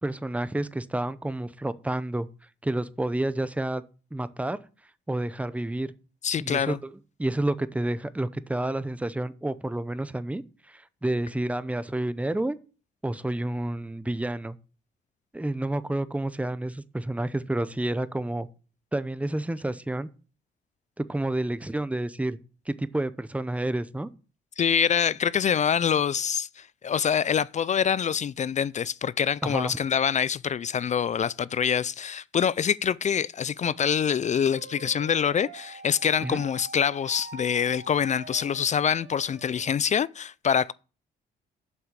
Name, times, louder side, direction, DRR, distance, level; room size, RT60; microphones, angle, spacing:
voice 1, 0.0-2.3 2.6-3.8 4.1-4.6 5.1-5.9 6.4-6.8 7.2-12.6 13.0-14.6 15.3-18.5 18.9-20.1 21.0-22.4 22.7-24.1 29.4-29.8 36.2-36.4, right 1 dB, 5° right, 0.7 m, -29 dB
voice 2, 6.2-6.8 24.6-40.7, left 8 dB, 35° left, 0.4 m, -25 dB
sound 1, 34.5-39.7, right 4 dB, 70° right, 2.2 m, -45 dB
7.6 x 5.7 x 7.4 m
cardioid pair, 90°, 20 cm